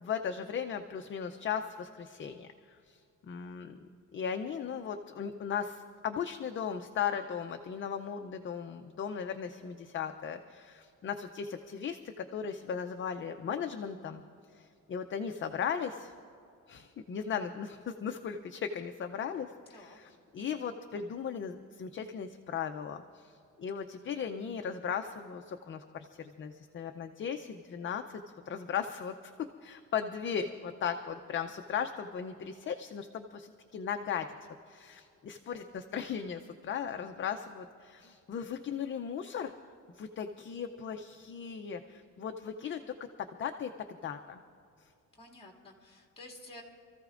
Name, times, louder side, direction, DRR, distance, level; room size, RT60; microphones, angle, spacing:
voice 1, 0.0-3.8 4.1-14.2 14.5-16.1 16.7-29.3 29.6-34.3 34.7-39.5 39.9-44.4 44.8-44.9, left 7 dB, 40° left, 6 dB, 0.6 m, -37 dB
voice 2, 19.7-20.1 45.1-46.6, left 1 dB, 15° left, -1 dB, 2.3 m, -51 dB
28.0 x 14.5 x 2.5 m, 2.5 s
wide cardioid pair, 165°, 32 cm